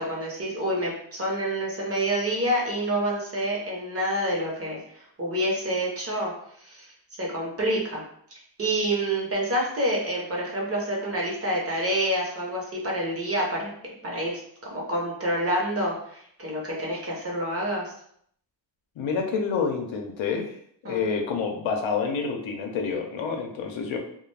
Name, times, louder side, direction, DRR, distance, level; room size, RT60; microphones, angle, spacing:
voice 1, 0.0-6.3 6.6-6.9 7.2-8.0 8.6-13.7 14.0-14.4 14.7-17.9 20.8-21.1, right 1 dB, 30° right, -2 dB, 0.6 m, -27 dB
voice 2, 19.0-20.5 20.8-24.0, left 5 dB, 85° left, 3 dB, 0.6 m, -28 dB
2.4 x 2.0 x 3.2 m, 0.67 s
wide cardioid pair, 155°, 46 cm